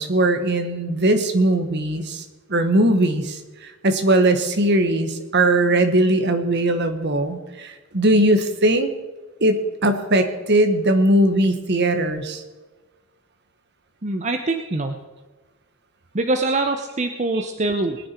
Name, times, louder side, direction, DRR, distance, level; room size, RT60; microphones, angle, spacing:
voice 1, 0.0-2.2 2.5-8.9 9.4-12.4, right 1 dB, 50° right, 8 dB, 1.4 m, -19 dB
voice 2, 14.0-14.9 16.1-18.0, right 2 dB, 35° right, 6 dB, 0.8 m, -23 dB
20.5 x 9.9 x 4.5 m, 1.3 s
head